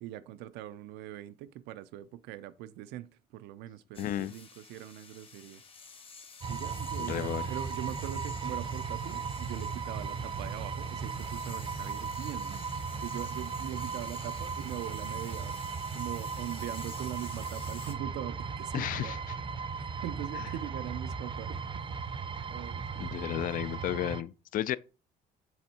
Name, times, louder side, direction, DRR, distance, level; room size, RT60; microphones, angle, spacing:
voice 1, 0.0-5.6 6.5-15.6 15.9-19.2 20.0-21.6 21.9-22.2 22.5-23.1, right 13 dB, 85° right, 0.5 m, -42 dB
sound 1, 3.9-17.9, left 5 dB, 35° left, 1.1 m, -51 dB
voice 2, 4.0-4.3 7.1-7.5 18.7-19.4 23.0-24.8, left 12 dB, 55° left, 0.4 m, -33 dB
sound 2, 6.4-24.2, right 5 dB, 30° right, 0.5 m, -37 dB
7.2 x 3.5 x 4.2 m
cardioid pair, 110°, 17 cm